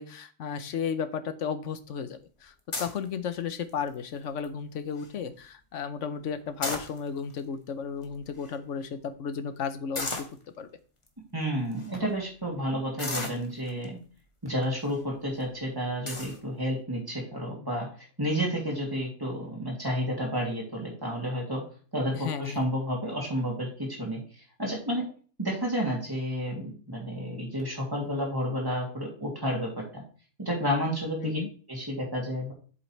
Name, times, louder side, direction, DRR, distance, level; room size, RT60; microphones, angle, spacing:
voice 1, 0.0-10.3 10.6-10.7 22.1-22.7 31.2-31.5, left 6 dB, 70° left, 11 dB, 1.2 m, -34 dB
sound 1, 2.7-3.1 3.7-4.0 4.4-4.5 4.7-5.1 6.4-7.3 8.0-8.1 8.3-8.5 9.9-10.4 11.1-11.2 11.7-11.9 13.0-13.8 14.6-15.0 15.4-15.5 16.1-16.4, left 2 dB, 25° left, 1.3 m, -34 dB
voice 2, 11.3-14.0 14.4-17.9 18.2-21.6 21.9-24.2 24.6-25.1 25.4-30.0 30.4-31.4 31.7-32.5, equal, 15° right, -2 dB, 2.8 m, -31 dB
8.0 x 7.5 x 3.3 m, 0.40 s
omnidirectional pair, 1.3 m